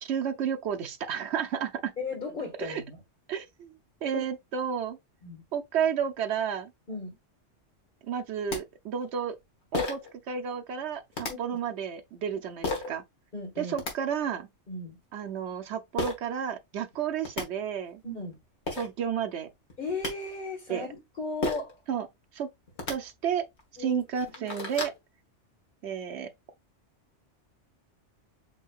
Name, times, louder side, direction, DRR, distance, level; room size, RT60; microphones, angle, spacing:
voice 1, 0.0-1.9 2.6-2.8 3.3-3.7 4.0-5.0 5.5-6.7 8.1-9.4 9.7-10.0 10.3-13.0 13.6-14.5 15.1-18.0 18.8-19.5 20.7-20.9 21.9-22.1 22.3-22.5 22.9-23.5 23.8-24.9 25.8-26.3, right 8 dB, 65° right, 1.0 m, -31 dB
voice 2, 2.0-3.0 4.1-4.3 5.2-5.4 6.9-7.2 11.3-11.4 13.3-13.7 14.7-15.0 18.0-18.4 19.8-21.7 23.8-24.0, left 3 dB, 45° left, 1.8 m, -36 dB
sound 1, 8.2-8.3 8.5-8.6 9.7-10.1 11.1-11.3 12.6-12.9 13.6-13.9 16.0-16.2 16.9-17.0 17.2-17.4 18.3-18.4 18.7-18.9 19.7-20.1 21.4-21.7 22.7-22.9 23.6-23.7 24.1-25.0, left 3 dB, 65° left, 1.6 m, -32 dB
7.7 x 2.8 x 2.3 m
omnidirectional pair, 1.3 m